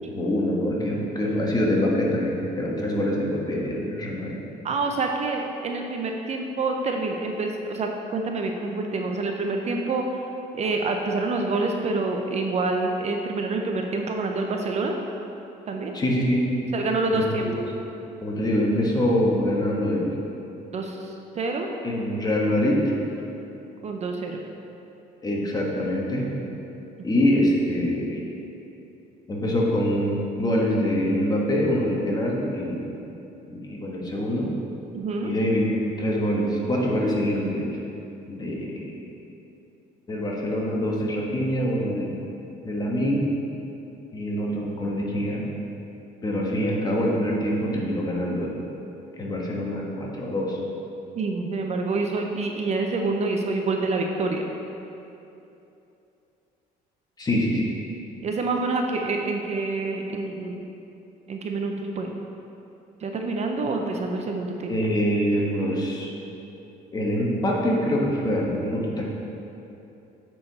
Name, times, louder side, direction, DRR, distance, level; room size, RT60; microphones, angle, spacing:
voice 1, 0.1-4.4 15.9-16.4 17.1-17.5 18.2-20.2 21.8-22.9 25.2-26.3 27.0-28.2 29.3-32.9 33.5-34.5 35.2-37.8 38.3-39.0 40.1-42.2 42.6-43.2 44.1-45.4 46.2-48.6 49.2-50.6 57.2-57.7 64.7-66.1 66.9-69.0, equal, 25° left, -3 dB, 1.3 m, -25 dB
voice 2, 4.6-10.2 10.5-15.0 15.7-15.9 16.7-17.5 20.7-21.7 23.8-24.4 27.0-27.1 34.9-35.3 51.2-54.4 58.2-60.6 61.3-62.1 63.0-64.7, right 3 dB, 40° right, 2 dB, 0.6 m, -27 dB
8.6 x 4.6 x 4.0 m, 2.9 s
cardioid pair, 110°, 17 cm